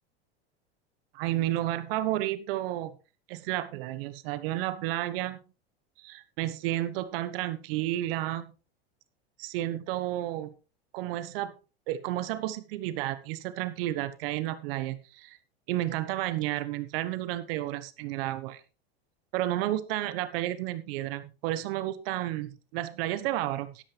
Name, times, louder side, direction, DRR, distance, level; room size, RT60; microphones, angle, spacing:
voice 1, 1.1-2.9 3.3-5.4 6.0-8.5 9.4-10.5 10.9-11.5 11.9-15.4 15.7-18.6 19.3-23.8, right 14 dB, 65° right, 14 dB, 1.2 m, -31 dB
11.5 x 11.5 x 3.3 m, 0.31 s
hypercardioid pair, 105°, 32 cm